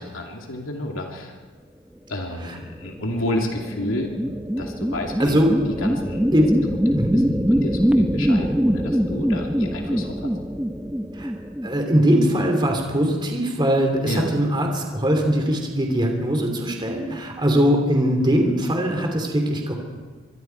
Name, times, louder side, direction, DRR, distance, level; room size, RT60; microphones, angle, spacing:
voice 1, 0.0-1.3 2.1-5.4 5.8-6.3 6.9-10.3 14.0-14.3, left 1 dB, 85° left, 1 dB, 2.7 m, -31 dB
sound 1, 2.7-12.5, equal, 5° right, 0.8 m, -23 dB
voice 2, 5.2-5.5 6.3-6.5 6.9-7.1 11.1-11.3 11.6-19.7, equal, 25° right, 2 dB, 2.9 m, -21 dB
25.0 x 23.0 x 4.6 m, 1.4 s
head